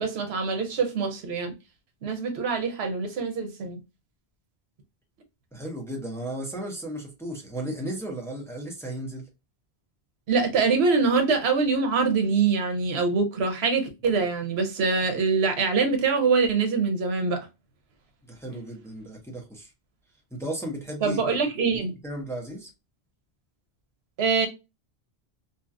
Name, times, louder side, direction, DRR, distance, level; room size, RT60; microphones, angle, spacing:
voice 1, 0.0-1.5 2.0-3.8 10.3-17.4 21.0-21.9 24.2-24.5, right 4 dB, 85° right, 1.0 m, -24 dB
voice 2, 5.5-9.2 18.2-19.7 20.3-21.3 22.0-22.7, right 1 dB, 5° left, 0.8 m, -35 dB
2.9 x 2.7 x 2.3 m
omnidirectional pair, 1.1 m